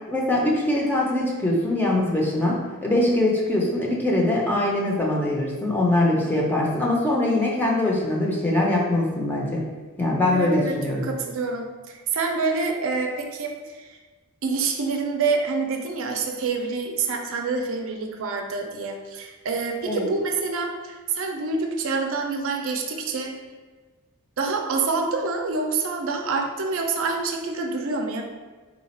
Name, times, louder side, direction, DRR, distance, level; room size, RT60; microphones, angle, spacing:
voice 1, 0.1-9.6 10.0-11.1 19.9-20.1, left 1 dB, 10° left, -3 dB, 0.6 m, -22 dB
voice 2, 10.3-14.0 14.4-23.4 24.4-28.2, right 4 dB, 60° right, 2 dB, 0.5 m, -27 dB
4.0 x 2.4 x 4.2 m, 1.3 s
head